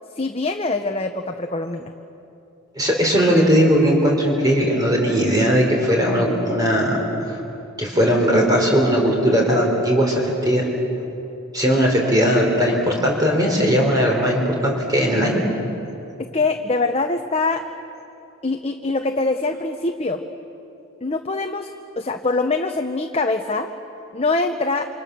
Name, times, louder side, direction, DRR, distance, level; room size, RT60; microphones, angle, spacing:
voice 1, 0.2-1.9 16.3-17.6 18.4-20.2 21.0-21.7 22.0-23.7 24.1-24.9, left 3 dB, 30° left, 5 dB, 0.8 m, -23 dB
voice 2, 2.8-7.0 7.3-7.4 7.8-10.7 11.5-15.4, equal, 15° right, -1 dB, 3.6 m, -18 dB
28.5 x 26.0 x 6.8 m, 2.8 s
head